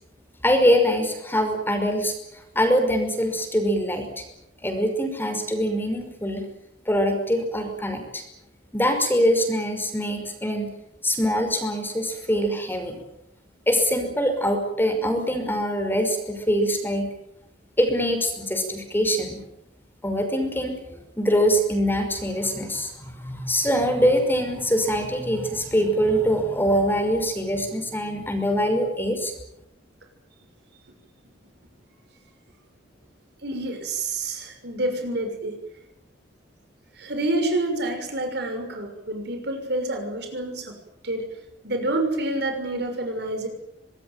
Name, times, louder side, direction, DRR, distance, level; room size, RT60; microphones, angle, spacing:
voice 1, 0.4-2.1 2.6-4.2 4.6-6.5 6.9-8.2 8.7-10.7 11.0-13.0 13.7-17.1 17.8-19.4 20.0-29.3, equal, 10° left, 6 dB, 5.5 m, -23 dB
voice 2, 33.4-35.5 37.0-40.7 41.0-41.2 41.6-43.5, right 2 dB, 65° right, 5 dB, 6.5 m, -28 dB
25.0 x 20.5 x 9.3 m, 0.81 s
head